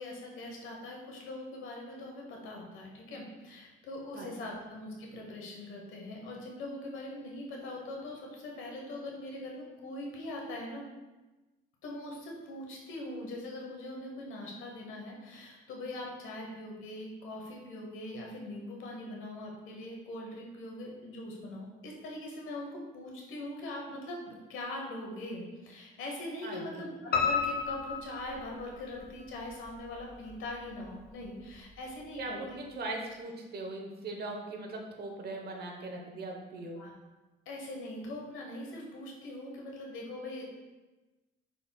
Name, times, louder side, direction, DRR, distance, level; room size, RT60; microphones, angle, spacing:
voice 1, 0.0-10.9 11.8-32.7 36.8-36.9 37.5-40.4, left 1 dB, 85° left, -1 dB, 1.1 m, -42 dB
voice 2, 26.4-26.8 32.2-36.8, right 2 dB, 55° right, 2 dB, 0.9 m, -40 dB
Piano, 27.1-29.0 29.5-30.3 30.7-30.8 31.2-31.3 31.6-31.7, left 6 dB, 50° left, 0.7 m, -32 dB
5.4 x 4.1 x 2.2 m, 1.1 s
cardioid pair, 90°, 20 cm